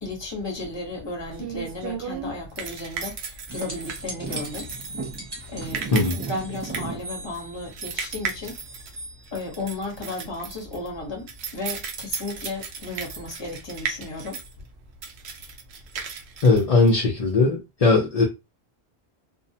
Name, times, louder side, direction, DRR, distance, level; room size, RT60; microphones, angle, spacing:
voice 1, 0.0-4.7 5.5-5.9 6.1-8.6 9.3-14.4, left 2 dB, 25° left, 0.8 m, -34 dB
sound 1, 0.6-17.4, right 6 dB, 75° right, 0.9 m, -36 dB
sound 2, 3.5-9.1 12.1-12.2, right 3 dB, 25° right, 0.6 m, -37 dB
voice 2, 16.4-18.2, left 3 dB, 45° left, 0.5 m, -19 dB
2.6 x 2.0 x 2.7 m
omnidirectional pair, 1.1 m